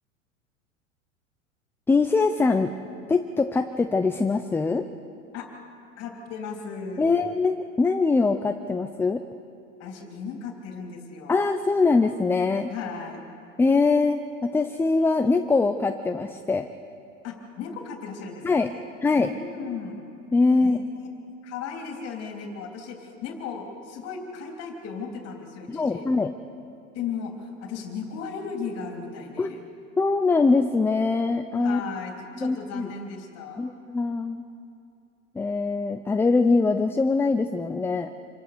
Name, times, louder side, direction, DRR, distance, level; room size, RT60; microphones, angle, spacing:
voice 1, 1.9-2.7 3.1-4.9 7.0-9.2 11.3-12.7 13.6-16.7 18.4-18.7 19.0-19.3 20.3-20.8 25.7-26.3 29.4-29.5 30.0-31.8 32.4-32.9 33.6-34.4 35.4-38.1, left 3 dB, 5° left, 7 dB, 0.5 m, -23 dB
voice 2, 6.0-7.2 9.8-11.4 12.7-13.2 17.2-18.9 19.2-20.1 20.6-21.1 21.4-26.1 26.9-29.6 31.6-33.7, left 5 dB, 40° left, 2 dB, 3.4 m, -36 dB
26.5 x 17.0 x 6.7 m, 2.6 s
hypercardioid pair, 120°, 39 cm